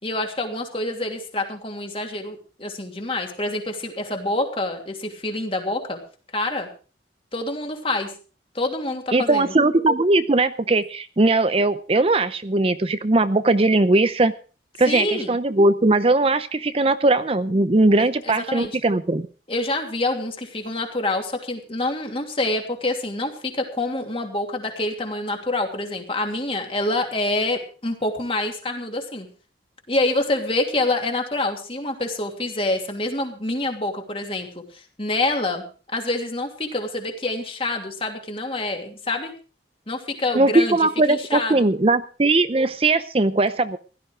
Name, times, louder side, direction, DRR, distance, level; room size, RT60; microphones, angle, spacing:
voice 1, 0.0-6.0 6.3-6.7 7.3-8.1 8.5-9.5 14.9-15.3 18.0-18.7 19.5-29.3 29.9-35.6 35.9-39.3 39.9-41.7, left 2 dB, 30° left, 3 dB, 2.8 m, -26 dB
voice 2, 9.1-14.3 14.8-19.3 40.3-43.8, right 2 dB, 35° right, 12 dB, 0.6 m, -19 dB
16.0 x 12.5 x 4.7 m, 0.38 s
head